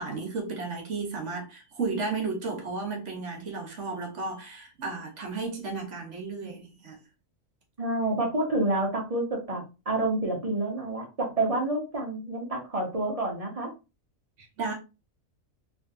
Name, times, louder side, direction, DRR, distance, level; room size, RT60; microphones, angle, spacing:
voice 1, 0.0-7.0 14.4-14.7, right 4 dB, 65° right, 1.2 m, -33 dB
voice 2, 7.8-13.7, right 2 dB, 30° right, 0.9 m, -28 dB
3.4 x 2.6 x 2.6 m
omnidirectional pair, 1.4 m